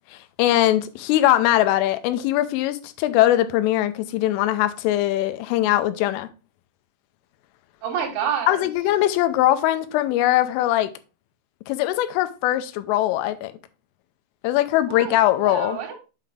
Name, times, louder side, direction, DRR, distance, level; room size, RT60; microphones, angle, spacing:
voice 1, 0.1-6.3 8.5-10.9 11.7-13.5 14.4-15.8, left 14 dB, 90° left, 3.3 m, -21 dB
voice 2, 7.8-8.7 14.9-15.9, right 8 dB, 75° right, 3.9 m, -29 dB
8.2 x 5.8 x 3.5 m
omnidirectional pair, 5.6 m